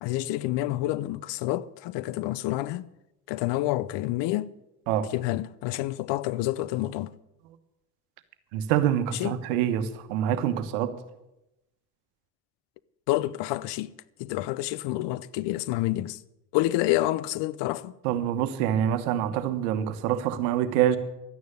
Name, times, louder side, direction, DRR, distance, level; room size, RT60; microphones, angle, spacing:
voice 1, 0.0-2.9 3.3-4.5 5.1-7.1 9.1-9.4 13.1-13.9 14.2-16.2 16.5-17.9, left 16 dB, 70° left, 0.8 m, -28 dB
voice 2, 8.5-10.9 18.0-21.0, right 10 dB, 85° right, 1.3 m, -26 dB
12.5 x 9.6 x 9.6 m
hypercardioid pair, 65°, 43 cm